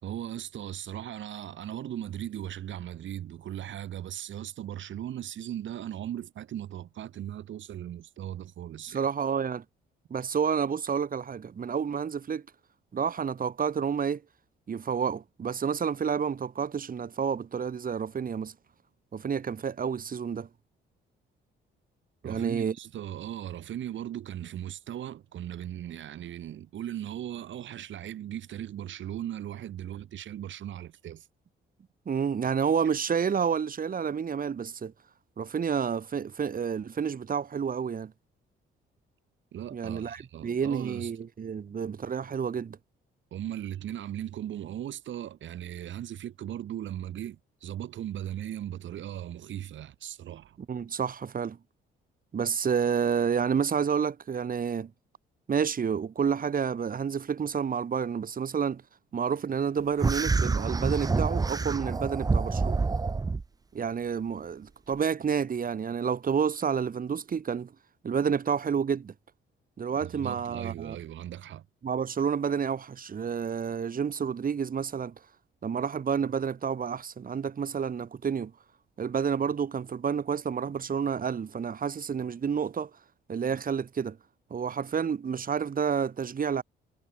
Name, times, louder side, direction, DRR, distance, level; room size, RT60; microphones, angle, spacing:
voice 1, 0.0-9.0 22.2-31.3 39.5-41.1 43.3-50.6 70.0-71.7, right 11 dB, 70° right, 6.6 m, -38 dB
voice 2, 8.9-9.6 10.1-12.4 12.9-14.2 14.7-18.5 19.1-20.5 22.2-22.7 32.1-34.9 35.4-38.1 39.7-42.8 50.7-51.6 52.3-54.9 55.5-58.8 59.1-62.8 63.7-67.7 68.0-69.1 69.8-71.0 71.8-75.1 75.6-78.5 79.0-82.9 83.3-84.2 84.5-86.6, right 7 dB, 45° right, 3.9 m, -29 dB
sound 1, 60.0-63.4, right 4 dB, 20° right, 0.6 m, -27 dB
cardioid pair, 90°, 20 cm